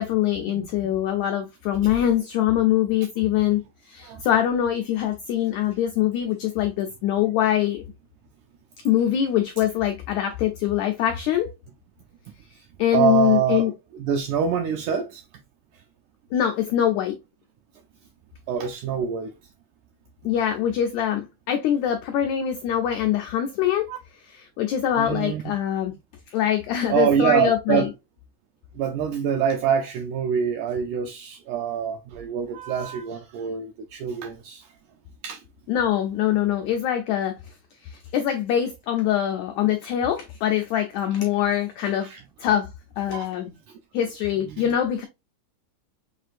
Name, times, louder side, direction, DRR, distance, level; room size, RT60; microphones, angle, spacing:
voice 1, 0.0-7.8 8.8-11.5 12.8-13.7 16.3-17.2 20.2-23.9 24.6-25.9 26.3-27.9 35.7-37.3 37.8-42.1 42.4-42.7 43.0-43.6 43.9-45.1, left 10 dB, 90° left, 1.6 m, -23 dB
voice 2, 0.5-0.9 1.8-1.9 4.0-4.2 12.6-12.7 12.9-13.7 14.0-15.2 18.5-19.3 23.9-24.0 25.0-25.4 26.9-27.9 28.8-34.7 35.2-35.4 41.9-42.2 43.1-43.3 44.5-44.6, right 7 dB, 85° right, 1.7 m, -25 dB
6.2 x 2.5 x 2.4 m
omnidirectional pair, 3.9 m